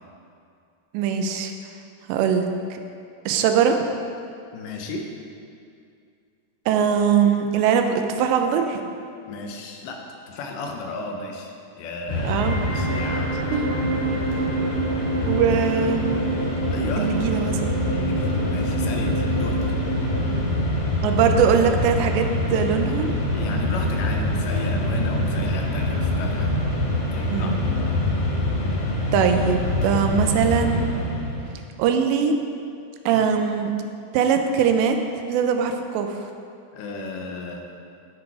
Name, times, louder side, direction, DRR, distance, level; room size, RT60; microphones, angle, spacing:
voice 1, 0.9-1.5 2.1-2.8 3.3-3.8 6.7-8.9 12.3-12.6 13.5-13.6 15.3-16.2 17.0-17.7 21.0-23.2 27.3-27.6 29.1-30.9 31.8-32.4 33.1-33.7 34.1-35.0 35.2-36.2, right 7 dB, 85° right, 5 dB, 2.9 m, -21 dB
voice 2, 4.5-5.1 9.3-13.7 16.7-17.1 17.9-19.6 23.3-26.5 27.1-28.0 33.1-33.4 36.7-37.7, left 3 dB, 80° left, 2 dB, 3.3 m, -34 dB
Mechanisms, 12.1-31.5, left 1 dB, 55° left, 2.7 m, -25 dB
sound 1, 12.3-20.3, right 2 dB, 55° right, 1.7 m, -28 dB
sound 2, 17.5-29.4, left 3 dB, 30° left, 2.0 m, -39 dB
16.5 x 6.2 x 4.8 m, 2.4 s
omnidirectional pair, 5.0 m